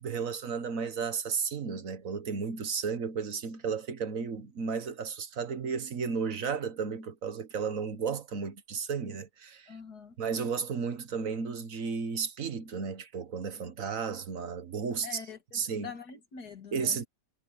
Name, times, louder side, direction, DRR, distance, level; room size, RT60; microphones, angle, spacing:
voice 1, 0.0-9.7 10.2-15.2 15.5-15.9 16.7-17.0, right 6 dB, 55° right, 1.7 m, -33 dB
voice 2, 9.7-10.2 15.0-17.0, left 6 dB, 65° left, 2.7 m, -45 dB
omnidirectional pair, 1.8 m